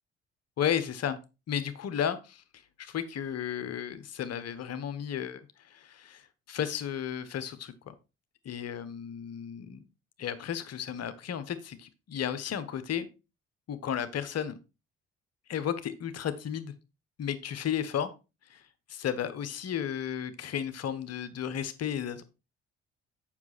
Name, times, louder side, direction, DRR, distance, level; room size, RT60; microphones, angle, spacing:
voice 1, 0.6-1.2 1.5-2.4 2.8-7.9 8.4-9.8 10.2-13.1 13.7-14.6 15.5-16.7 17.2-18.1 18.5-18.6 18.9-22.2, left 9 dB, 50° left, 12 dB, 1.2 m, -33 dB
7.3 x 5.9 x 4.1 m, 0.28 s
hypercardioid pair, 50°, 31 cm